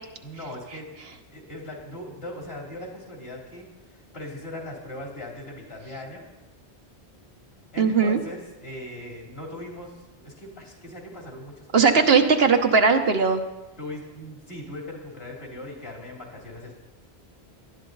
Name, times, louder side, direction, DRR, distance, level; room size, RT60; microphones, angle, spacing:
voice 1, 0.2-0.9 1.3-6.2 7.7-12.0 13.8-16.7, left 1 dB, 65° left, -1 dB, 3.4 m, -39 dB
voice 2, 7.8-8.2 11.7-13.4, right 5 dB, 70° right, 5 dB, 1.3 m, -18 dB
18.5 x 12.0 x 4.0 m, 1.1 s
omnidirectional pair, 1.1 m